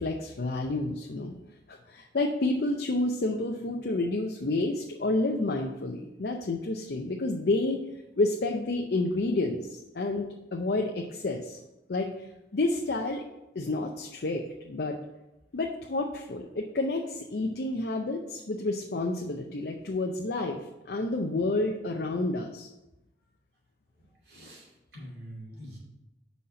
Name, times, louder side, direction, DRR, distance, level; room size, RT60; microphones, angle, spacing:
voice 1, 0.0-1.3 1.7-7.8 8.2-11.6 11.9-12.3 12.5-13.2 13.5-15.0 15.5-20.6 20.9-22.7, left 2 dB, 65° left, 2 dB, 0.6 m, -29 dB
voice 2, 24.3-24.7 24.9-25.8, equal, 60° right, -4 dB, 2.5 m, -44 dB
5.7 x 4.1 x 6.2 m, 0.95 s
head